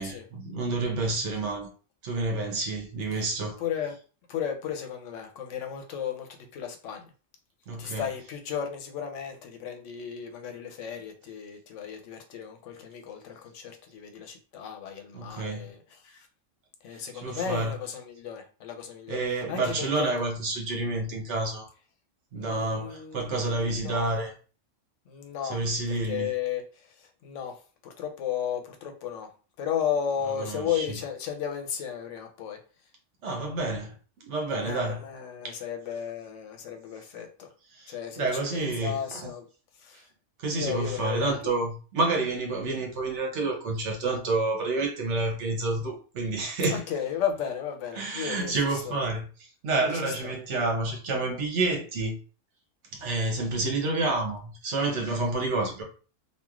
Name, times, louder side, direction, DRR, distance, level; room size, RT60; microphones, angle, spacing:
voice 1, 0.0-1.7 2.0-3.6 7.7-8.1 15.1-15.7 17.2-17.7 19.1-21.7 22.3-24.3 25.5-26.3 30.4-30.8 33.2-33.9 34.2-35.0 35.4-35.6 37.7-39.3 40.4-46.8 47.9-49.3 49.6-52.2 52.9-55.8, right 2 dB, 65° right, 1.1 m, -29 dB
voice 2, 3.6-3.9 4.3-7.1 7.8-16.3 16.8-20.1 22.4-24.1 25.1-25.6 25.9-29.3 29.6-32.6 34.5-37.5 37.9-39.5 39.8-40.0 40.5-41.5 46.7-49.0 49.8-50.3, left 8 dB, 75° left, 0.9 m, -34 dB
3.0 x 2.3 x 2.4 m
omnidirectional pair, 1.3 m